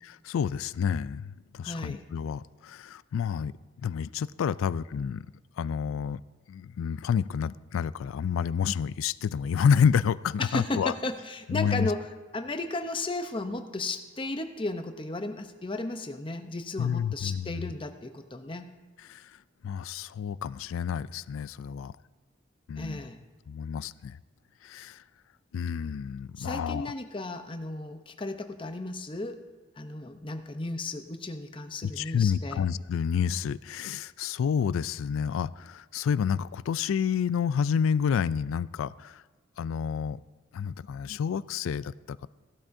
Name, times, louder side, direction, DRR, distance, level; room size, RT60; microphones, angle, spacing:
voice 1, 0.0-3.5 3.8-5.3 5.6-6.2 6.5-10.9 11.5-11.9 16.8-17.7 19.1-19.4 19.6-21.9 22.7-23.0 23.5-24.2 24.6-25.0 25.5-26.9 31.8-39.2 39.6-40.2 40.5-42.3, left 7 dB, 85° left, 18 dB, 0.3 m, -29 dB
voice 2, 1.6-2.0 10.4-12.1 12.3-18.7 22.8-23.2 26.4-29.4 29.8-32.6, left 2 dB, 25° left, 7 dB, 0.6 m, -34 dB
17.5 x 12.0 x 2.6 m, 1.2 s
head